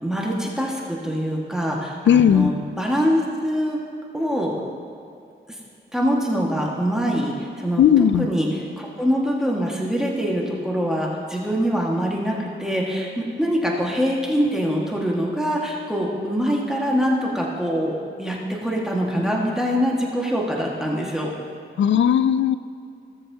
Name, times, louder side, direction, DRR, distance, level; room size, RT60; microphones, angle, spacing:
voice 1, 0.0-3.8 4.1-4.5 5.5-5.6 5.9-7.8 8.1-18.4 18.6-21.3, equal, 5° right, -3 dB, 1.7 m, -24 dB
voice 2, 2.1-2.5 7.8-8.3 21.8-22.6, left 9 dB, 70° left, 14 dB, 0.4 m, -16 dB
17.5 x 6.9 x 2.8 m, 2.4 s
cardioid pair, 65°, 20 cm